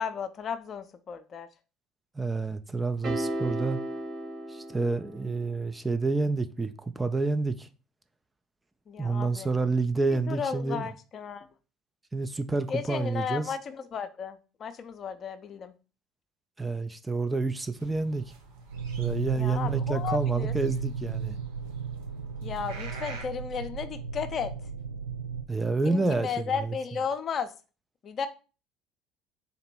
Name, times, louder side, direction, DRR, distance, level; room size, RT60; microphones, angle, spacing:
voice 1, 0.0-1.5 8.9-9.5 10.1-11.5 12.7-15.7 19.3-20.5 22.4-24.5 25.8-27.5 28.0-28.3, left 6 dB, 40° left, 0.5 m, -34 dB
voice 2, 2.2-3.8 4.5-7.7 9.0-10.9 12.1-13.5 16.6-18.2 19.0-21.4 25.5-26.3 26.6-26.7, right 3 dB, 15° right, 0.4 m, -29 dB
sound 1, 3.0-5.5, right 1 dB, 40° right, 1.9 m, -34 dB
sound 2, 17.8-23.2, right 5 dB, 70° right, 0.8 m, -47 dB
sound 3, 18.7-25.4, right 7 dB, 90° right, 0.3 m, -34 dB
4.0 x 2.9 x 4.4 m
figure-of-eight pair, 60°, 0 cm